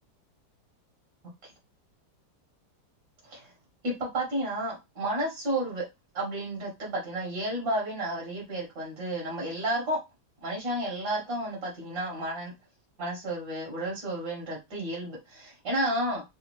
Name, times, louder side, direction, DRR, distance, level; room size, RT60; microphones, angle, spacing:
voice 1, 3.8-5.8 6.1-10.0 10.4-12.5 13.0-16.2, right 1 dB, 60° right, -2 dB, 1.9 m, -31 dB
4.1 x 2.4 x 3.0 m, 0.23 s
omnidirectional pair, 2.1 m